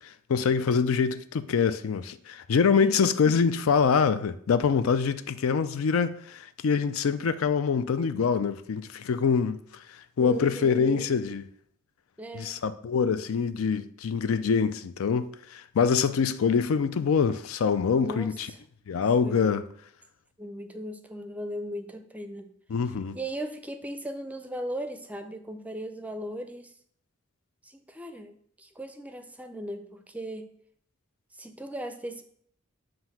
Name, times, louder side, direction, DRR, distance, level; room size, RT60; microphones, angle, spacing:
voice 1, 0.3-9.6 10.2-11.4 12.3-18.5 18.9-19.6 22.7-23.1, left 6 dB, 85° left, 0.4 m, -25 dB
voice 2, 10.2-11.1 12.2-12.5 18.0-18.6 19.2-19.7 20.4-22.5 23.1-26.7 27.6-30.5 31.4-32.2, right 1 dB, 5° right, 0.5 m, -38 dB
7.7 x 2.6 x 5.7 m
head